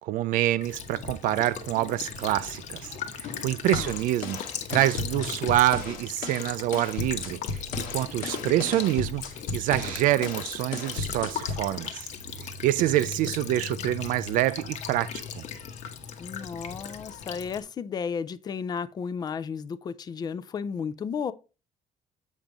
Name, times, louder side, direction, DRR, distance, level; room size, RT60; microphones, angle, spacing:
voice 1, 0.0-4.4 4.7-9.3 9.5-12.1 12.6-15.5, right 14 dB, 75° right, 0.4 m, -26 dB
Child speech kid speaking / Bird vocalization bird call bird song / Stream, 0.6-17.6, left 7 dB, 60° left, 1.0 m, -38 dB
sound 1, 3.7-11.7, left 4 dB, 85° left, 1.3 m, -35 dB
voice 2, 13.5-13.9 16.2-21.3, left 6 dB, 30° left, 0.4 m, -34 dB
7.3 x 5.2 x 3.4 m
cardioid pair, 155°, 14 cm